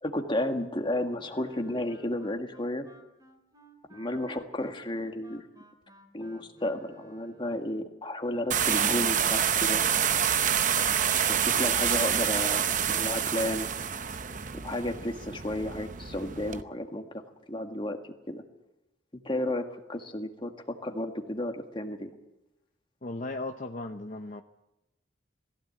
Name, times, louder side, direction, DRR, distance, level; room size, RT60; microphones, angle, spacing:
voice 1, 0.0-2.9 3.9-5.4 6.1-9.8 11.3-13.7 14.6-17.2 17.5-18.0 18.3-18.4 19.1-22.1, left 1 dB, 25° left, 5 dB, 1.8 m, -32 dB
Wind instrument woodwind instrument, 1.2-7.6, right 3 dB, 20° right, 3.2 m, -56 dB
sound 1, 8.5-16.6, right 8 dB, 45° right, 0.8 m, -27 dB
voice 2, 23.0-24.4, left 2 dB, 45° left, 5 dB, 0.9 m, -36 dB
21.0 x 15.5 x 8.7 m, 0.95 s
head